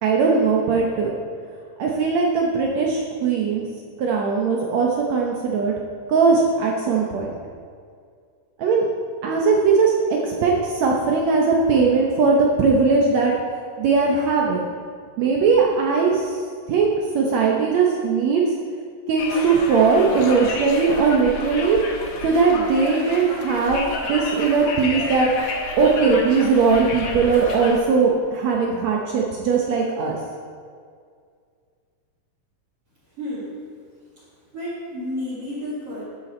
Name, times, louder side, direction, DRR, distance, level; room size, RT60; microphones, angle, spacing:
voice 1, 0.0-1.1 1.8-3.6 4.0-5.7 6.1-7.3 8.6-8.9 9.2-13.3 13.8-14.6 15.2-16.4 16.7-18.4 19.1-21.8 22.2-30.2, right 4 dB, 75° right, -1 dB, 1.6 m, -19 dB
Conversation, 19.2-27.8, left 3 dB, 80° left, 1.3 m, -31 dB
voice 2, 33.2-33.6 34.2-34.3 34.5-36.0, left 1 dB, 45° right, -10 dB, 2.6 m, -31 dB
12.0 x 7.6 x 4.3 m, 2.1 s
omnidirectional pair, 4.2 m